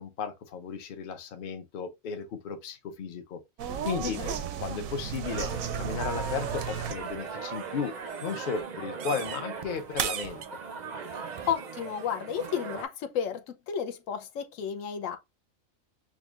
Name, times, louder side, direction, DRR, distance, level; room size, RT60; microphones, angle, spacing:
voice 1, 0.0-3.4 3.8-4.2 4.6-5.5 5.8-7.9 8.2-10.4, left 6 dB, 50° left, 0.7 m, -35 dB
sound 1, 3.6-7.1 7.3-7.8 8.1-8.4 9.0-9.4 10.0-10.4, right 8 dB, 90° right, 1.0 m, -34 dB
voice 2, 4.0-4.3 11.1-15.2, left 8 dB, 80° left, 1.0 m, -33 dB
sound 2, 5.2-12.8, right 5 dB, 55° right, 0.4 m, -39 dB
6.1 x 2.3 x 2.4 m
omnidirectional pair, 1.4 m